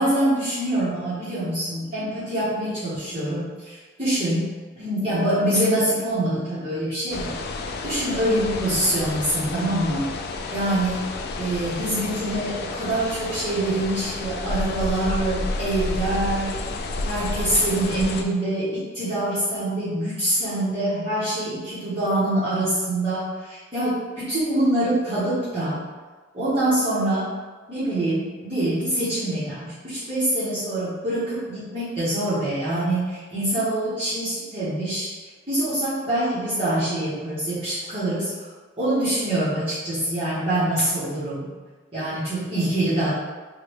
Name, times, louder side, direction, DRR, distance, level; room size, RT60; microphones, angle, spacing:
voice 1, 0.0-4.5 4.8-7.4 7.8-10.1 10.5-11.0 11.4-16.6 17.0-25.8 26.3-27.3 27.7-35.1 35.5-38.3 38.8-41.4 41.9-43.1, right 1 dB, 30° right, -14 dB, 1.2 m, -25 dB
sound 1, 7.1-18.2, left 3 dB, 55° left, 0.3 m, -30 dB
4.6 x 2.3 x 3.3 m, 1.4 s
head